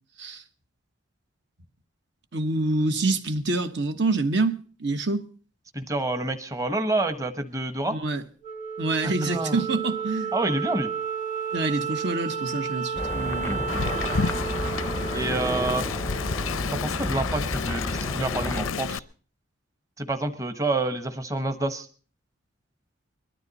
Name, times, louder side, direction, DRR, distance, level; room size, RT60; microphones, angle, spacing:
voice 1, 2.3-5.2 7.9-8.2 8.8-10.3 11.5-13.6, right 2 dB, 60° right, 1.2 m, -26 dB
voice 2, 5.7-8.0 9.0-9.6 10.3-10.9 13.5-14.0 15.1-15.9 16.7-19.0 20.0-21.9, right 2 dB, 15° right, 1.0 m, -28 dB
Wind instrument woodwind instrument, 8.4-17.0, right 6 dB, 40° right, 1.9 m, -32 dB
sound 1, 13.0-18.7, left 1 dB, 10° left, 0.6 m, -32 dB
Wind, 13.7-19.0, left 5 dB, 90° left, 0.6 m, -30 dB
21.5 x 13.0 x 4.1 m
head